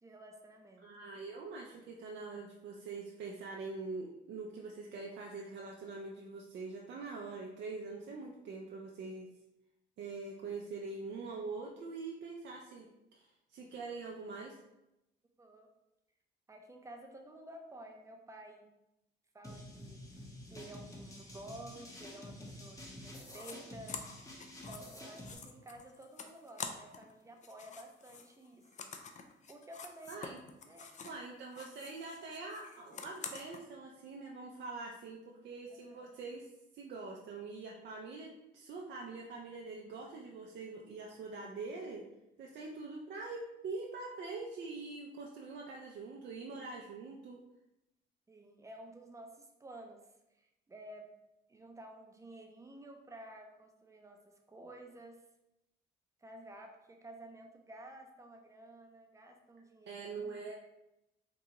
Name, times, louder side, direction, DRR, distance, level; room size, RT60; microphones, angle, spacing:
voice 1, 0.0-0.9 15.4-15.7 16.5-18.7 19.3-24.0 24.7-28.9 29.5-30.2 30.7-30.9 35.7-36.1 48.3-50.0 50.4-51.1 51.5-55.2 56.2-60.4, right 1 dB, 15° right, 3 dB, 0.5 m, -52 dB
voice 2, 0.8-9.3 10.0-14.6 30.1-30.4 31.0-36.5 36.7-42.0 42.4-47.4 59.9-60.6, right 3 dB, 65° right, -1 dB, 0.4 m, -44 dB
sound 1, 19.4-25.4, left 1 dB, 15° left, 0.8 m, -49 dB
sound 2, 23.3-23.5 23.9-27.1 27.4-31.2 31.5-33.6, left 5 dB, 40° left, 0.4 m, -47 dB
3.8 x 2.2 x 2.9 m, 0.92 s
cardioid pair, 90°, 20 cm